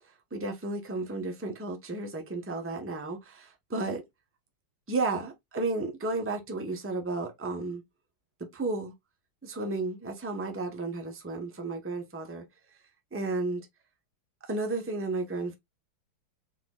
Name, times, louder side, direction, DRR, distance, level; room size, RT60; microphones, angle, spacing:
voice 1, 0.3-4.0 4.9-7.8 8.5-8.9 9.4-12.4 13.1-13.7 14.4-15.5, right 3 dB, 15° right, 0.4 m, -33 dB
4.3 x 4.2 x 2.3 m
omnidirectional pair, 2.3 m